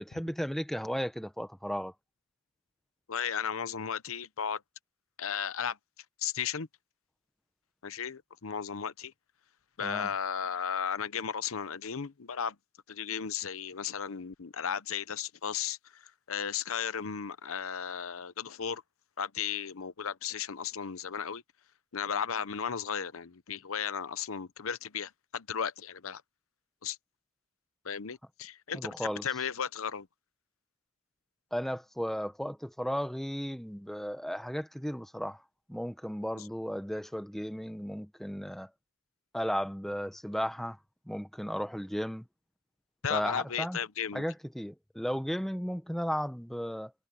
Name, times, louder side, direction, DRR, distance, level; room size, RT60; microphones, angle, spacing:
voice 1, 0.0-1.9 9.8-10.1 28.7-29.2 31.5-35.4 35.7-38.7 39.3-40.8 41.1-42.2 43.1-43.8 44.1-46.9, equal, ahead, 0.9 m, -35 dB
voice 2, 3.1-4.6 5.2-5.8 6.2-6.7 7.8-9.1 9.8-12.6 12.9-15.8 16.3-18.8 19.2-21.4 21.9-26.2 26.8-27.0 27.8-30.1 43.0-44.2, left 7 dB, 75° left, 0.8 m, -35 dB
head